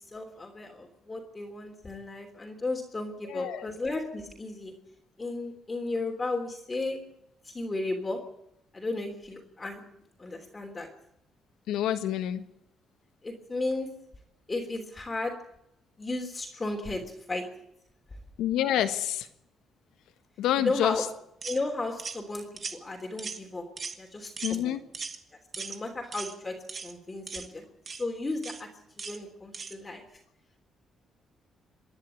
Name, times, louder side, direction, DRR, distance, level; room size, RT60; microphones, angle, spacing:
voice 1, 0.0-4.7 5.2-7.0 7.4-8.2 8.7-10.9 13.2-13.9 14.5-15.3 16.0-17.0 17.3-17.5 20.6-21.0 21.4-22.5 22.7-23.7 24.0-24.8 25.6-26.6 26.8-28.7 29.0-30.0, left 2 dB, 25° left, 2 dB, 3.3 m, -34 dB
voice 2, 3.2-3.7 11.7-12.4 18.4-19.3 20.4-21.0 24.4-24.8, left 11 dB, 85° left, 11 dB, 1.4 m, -28 dB
sound 1, 21.4-21.6 22.0-22.2 22.6-22.8 23.2-23.5 23.8-24.0 24.4-24.6 24.9-25.2 25.5-25.8 26.1-26.4 26.7-26.9 27.3-27.5 27.9-28.0 28.4-28.6 29.0-29.2 29.5-29.8, right 5 dB, 40° right, 1.7 m, -38 dB
26.0 x 10.5 x 9.4 m, 0.78 s
cardioid pair, 90°, 0 cm